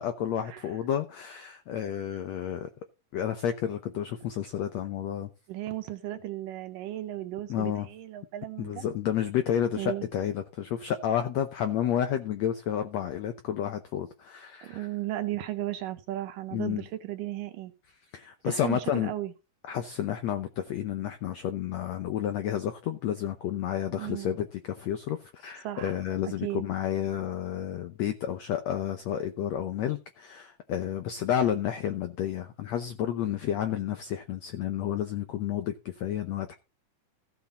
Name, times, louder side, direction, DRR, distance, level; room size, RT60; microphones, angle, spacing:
voice 1, 0.0-2.7 3.1-5.3 7.5-7.9 8.6-14.9 16.5-16.8 18.1-19.1 19.7-36.5, left 10 dB, 90° left, 1.5 m, -31 dB
voice 2, 5.5-8.9 9.8-10.1 14.6-17.7 18.4-19.3 23.9-24.3 25.6-25.9 26.2-26.6, right 14 dB, 75° right, 2.3 m, -35 dB
15.5 x 7.2 x 4.1 m
omnidirectional pair, 4.3 m